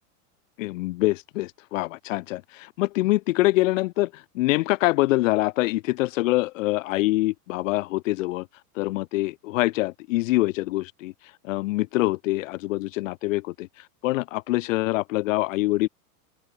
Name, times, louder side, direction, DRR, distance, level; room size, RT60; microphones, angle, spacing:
voice 1, 0.6-8.5 8.7-11.1 11.4-13.7 14.0-15.9, left 19 dB, 55° left, 3.1 m, -25 dB
open air
supercardioid pair, 165°, 46 cm